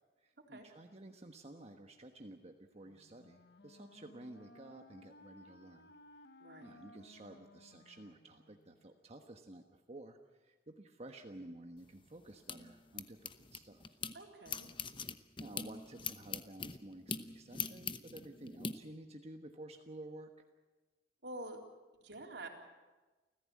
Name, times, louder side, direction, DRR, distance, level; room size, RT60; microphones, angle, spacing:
voice 1, 0.2-5.9 6.6-14.0 15.4-20.3, right 1 dB, 40° right, 4 dB, 1.3 m, -52 dB
Wind instrument woodwind instrument, 2.8-8.9, left 1 dB, 65° left, 1.2 m, -60 dB
voice 2, 6.4-6.7 14.1-14.7 21.2-21.6 22.0-22.5, right 2 dB, 75° right, 1 dB, 3.8 m, -47 dB
sound 1, 11.8-14.1 14.5-18.7, left 6 dB, 30° left, 0.9 m, -43 dB
28.5 x 15.5 x 8.6 m, 1.2 s
head